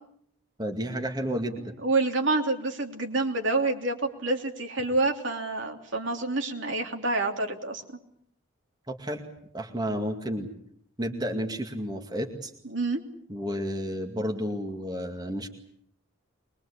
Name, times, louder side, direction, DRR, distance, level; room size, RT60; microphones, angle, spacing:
voice 1, 0.6-1.7 8.9-9.2 9.5-10.5 11.0-12.5 13.3-15.5, equal, 20° right, 3 dB, 2.2 m, -31 dB
voice 2, 1.8-7.8 12.6-13.0, right 2 dB, 60° right, 3 dB, 3.1 m, -27 dB
23.0 x 22.5 x 8.4 m, 0.67 s
head